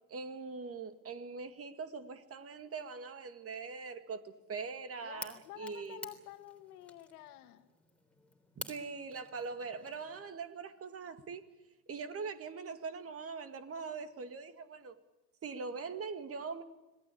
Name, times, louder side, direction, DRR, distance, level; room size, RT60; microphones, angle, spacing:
voice 1, 0.1-6.1 8.6-11.4 11.9-15.0 15.4-16.6, right 5 dB, 30° right, 10 dB, 2.1 m, -42 dB
voice 2, 5.0-7.7, left 14 dB, 65° left, 9 dB, 2.2 m, -50 dB
sound 1, 5.2-10.3, left 2 dB, ahead, 3.4 m, -50 dB
26.0 x 18.5 x 8.6 m, 1.1 s
hypercardioid pair, 85°, 49 cm